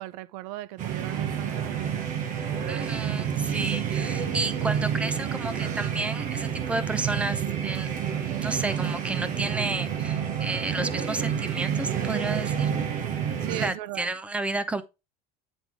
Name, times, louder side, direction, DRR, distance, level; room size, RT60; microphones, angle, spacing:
voice 1, 0.0-2.1 13.4-14.1, right 15 dB, 70° right, 0.5 m, -37 dB
sound 1, 0.8-13.7, right 8 dB, 40° right, 1.1 m, -29 dB
voice 2, 2.7-7.9 8.4-12.7 13.5-14.8, right 2 dB, 5° right, 0.5 m, -32 dB
9.0 x 3.6 x 4.7 m
cardioid pair, 175°, 20 cm